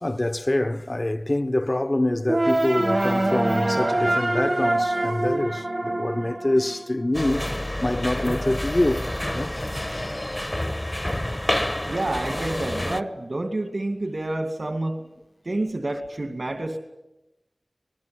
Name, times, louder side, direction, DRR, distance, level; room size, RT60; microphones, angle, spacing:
voice 1, 0.0-10.3, left 1 dB, 40° left, 1.1 m, -26 dB
sound 1, 2.3-7.3, right 1 dB, 45° right, 1.5 m, -24 dB
sound 2, 7.1-13.0, left 1 dB, 25° left, 1.2 m, -28 dB
voice 2, 11.9-15.0 15.4-16.8, right 2 dB, 65° right, 2.4 m, -28 dB
27.0 x 20.0 x 7.9 m
wide cardioid pair, 45°, 0 cm